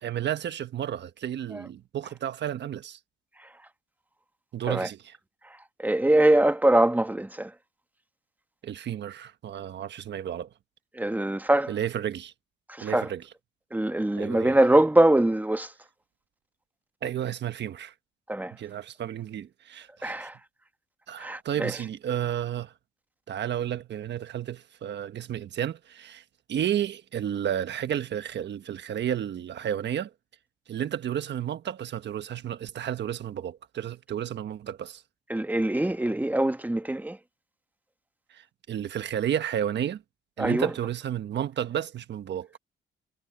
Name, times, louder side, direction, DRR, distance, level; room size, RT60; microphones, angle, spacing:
voice 1, 0.0-3.0 4.5-5.1 8.6-10.5 11.7-12.3 12.8-13.2 14.2-14.6 17.0-17.9 18.5-20.3 21.1-22.7 23.3-26.2 26.5-30.1 30.7-35.0 38.3-40.0 40.4-42.6, right 10 dB, 60° right, 1.3 m, -32 dB
voice 2, 5.8-7.5 10.9-11.7 12.7-13.1 13.7-15.7 18.3-18.5 20.0-20.4 21.2-21.7 35.3-37.2 40.4-40.7, right 1 dB, 10° right, 1.4 m, -23 dB
cardioid pair, 90°, 20 cm